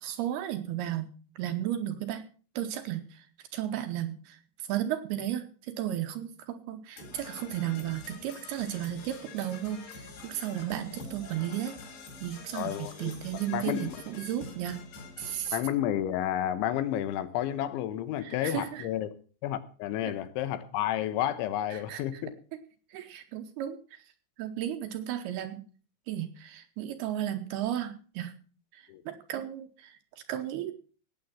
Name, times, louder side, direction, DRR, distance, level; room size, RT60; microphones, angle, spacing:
voice 1, 0.0-1.1 1.4-2.3 2.6-3.3 3.5-4.4 4.7-11.8 12.2-14.8 15.2-15.6 18.2-18.9 21.7-22.2 22.5-22.6 22.9-24.0 24.4-25.6 26.1-28.3 28.7-30.0 30.3-30.7, right 11 dB, 75° right, 2.6 m, -34 dB
Percussion / Brass instrument, 7.0-15.5, left 3 dB, 65° left, 5.9 m, -46 dB
voice 2, 12.5-13.1 13.5-13.9 15.5-19.1 19.4-22.3 28.9-29.0, left 12 dB, 85° left, 3.4 m, -31 dB
17.5 x 8.0 x 5.9 m
omnidirectional pair, 5.2 m